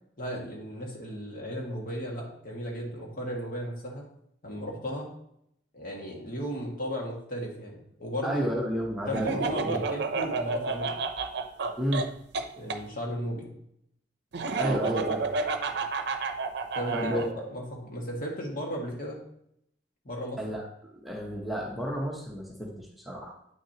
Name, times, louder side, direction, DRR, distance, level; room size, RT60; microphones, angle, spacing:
voice 1, 0.2-4.0 4.4-5.1 5.7-8.5 9.1-11.0 12.6-13.5 16.7-19.2 20.0-20.4, equal, 50° left, -1 dB, 2.0 m, -35 dB
voice 2, 8.2-9.3 9.6-9.8 11.8-12.1 14.5-15.3 16.9-17.4 20.4-20.6 21.0-23.4, equal, ahead, -3 dB, 1.0 m, -31 dB
Laughter, 9.1-12.8 14.3-17.3, right 4 dB, 65° right, 0.6 m, -30 dB
9.1 x 6.2 x 2.9 m, 0.74 s
head